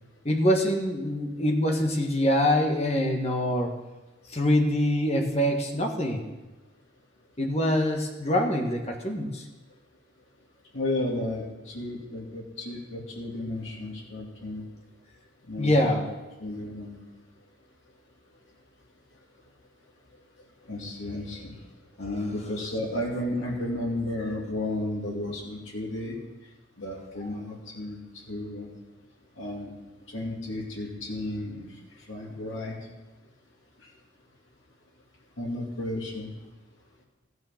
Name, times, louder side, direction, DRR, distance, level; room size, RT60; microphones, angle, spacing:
voice 1, 0.2-3.7 4.3-6.3 7.4-9.4 15.6-16.0, left 1 dB, 35° left, 3 dB, 1.5 m, -24 dB
voice 2, 10.7-14.6 15.5-16.0 16.4-17.0 20.6-21.6 22.0-26.2 26.8-28.0 28.3-28.7 29.4-29.7 30.1-31.7 32.1-32.8 35.4-36.3, left 1 dB, 85° left, -2 dB, 2.5 m, -33 dB
14.0 x 9.6 x 5.9 m, 1.1 s
head